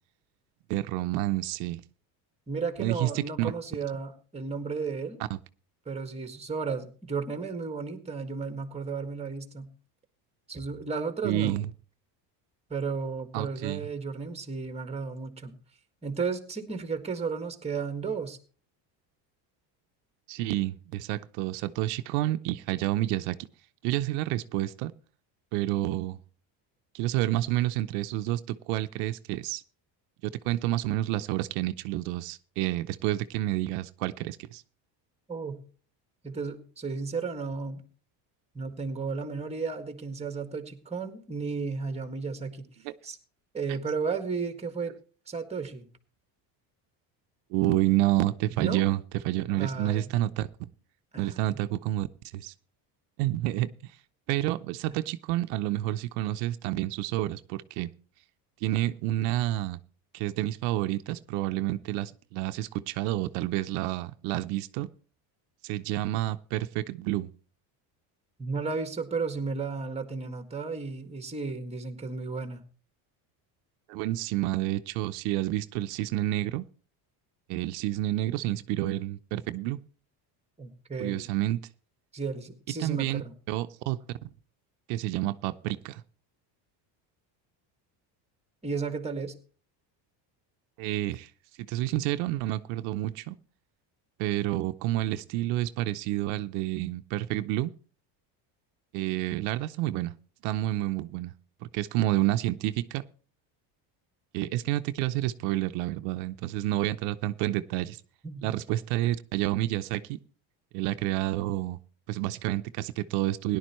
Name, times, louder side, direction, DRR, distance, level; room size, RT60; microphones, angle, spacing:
voice 1, 0.7-1.8 2.8-3.5 5.3-5.4 11.2-11.7 13.3-13.9 20.3-23.4 23.8-24.9 25.5-26.2 26.9-29.6 30.4-34.6 42.8-42.9 43.7-43.8 47.5-50.5 51.2-52.1 52.3-52.5 53.2-53.9 54.3-57.9 58.6-59.8 60.1-64.9 65.6-67.3 73.9-76.7 77.5-79.8 81.0-81.6 82.8-83.2 83.5-84.0 84.9-86.0 90.8-91.3 91.7-93.4 94.2-97.7 98.9-100.1 100.4-101.3 101.7-103.0 104.3-108.0 108.4-110.2 110.7-111.8 112.1-113.6, right 15 dB, 85° right, 10 dB, 0.8 m, -29 dB
voice 2, 2.5-5.2 5.9-9.7 10.5-11.6 12.7-15.5 16.0-18.4 35.3-35.6 36.2-37.8 38.5-42.7 43.0-43.2 43.5-44.9 45.3-45.9 48.6-48.9 49.6-50.1 51.1-51.6 68.4-72.6 80.6-81.3 82.1-83.3 88.6-89.3 108.2-108.5, right 4 dB, 15° right, 8 dB, 1.8 m, -33 dB
17.5 x 11.0 x 3.1 m, 0.39 s
cardioid pair, 120°, 48 cm